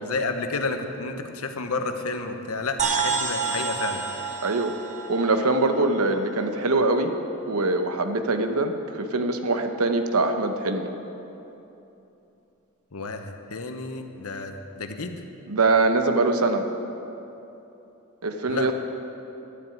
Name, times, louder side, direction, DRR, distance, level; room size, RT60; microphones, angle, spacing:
voice 1, 0.0-4.0 12.9-15.2 18.5-18.7, left 3 dB, 75° left, 6 dB, 1.0 m, -31 dB
sound 1, 2.8-6.6, right 5 dB, 35° right, 1.0 m, -29 dB
voice 2, 4.4-4.7 5.1-7.1 7.5-10.9 15.5-16.6 18.2-18.7, right 2 dB, 80° right, 7 dB, 1.0 m, -23 dB
11.5 x 7.8 x 9.1 m, 2.9 s
head